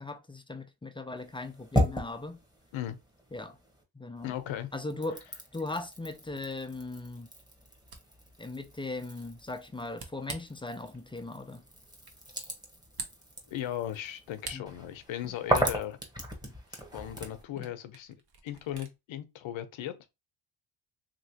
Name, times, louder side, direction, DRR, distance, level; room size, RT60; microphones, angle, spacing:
voice 1, 0.0-2.4 3.3-3.6 3.9-4.4 4.7-5.2 5.5-7.3 8.4-11.6 14.5-14.6 16.4-16.5 17.6-17.7, left 2 dB, 10° left, 0.3 m, -38 dB
sound 1, 1.2-3.8 4.2-17.4, equal, 10° right, 1.0 m, -37 dB
voice 2, 4.2-4.7 13.5-16.0 16.7-18.2 18.4-20.1, left 11 dB, 70° left, 0.7 m, -37 dB
Camera, 7.6-19.0, right 4 dB, 50° right, 0.9 m, -50 dB
2.9 x 2.9 x 2.8 m
cardioid pair, 75°, 48 cm